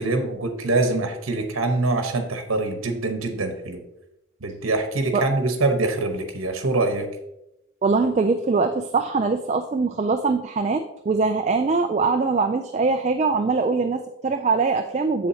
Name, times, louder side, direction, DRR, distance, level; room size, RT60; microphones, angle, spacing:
voice 1, 0.0-3.8 4.4-7.1, right 2 dB, 80° right, 5 dB, 1.0 m, -24 dB
voice 2, 7.8-15.3, right 4 dB, 30° right, 7 dB, 0.3 m, -22 dB
7.6 x 7.2 x 2.8 m, 0.86 s
head